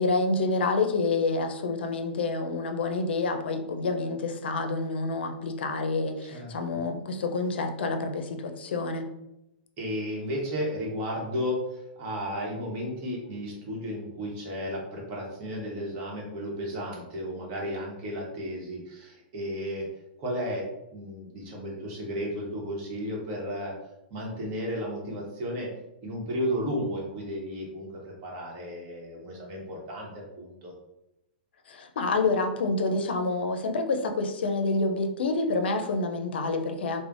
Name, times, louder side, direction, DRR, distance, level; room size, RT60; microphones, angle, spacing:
voice 1, 0.0-9.1 31.7-37.0, left 3 dB, 80° left, 6 dB, 0.4 m, -28 dB
voice 2, 6.3-6.8 9.8-19.9 20.2-20.7 20.9-23.8 24.1-25.7 26.0-30.7, equal, 45° right, -2 dB, 1.0 m, -33 dB
3.2 x 2.1 x 2.5 m, 0.88 s
hypercardioid pair, 135°, 6 cm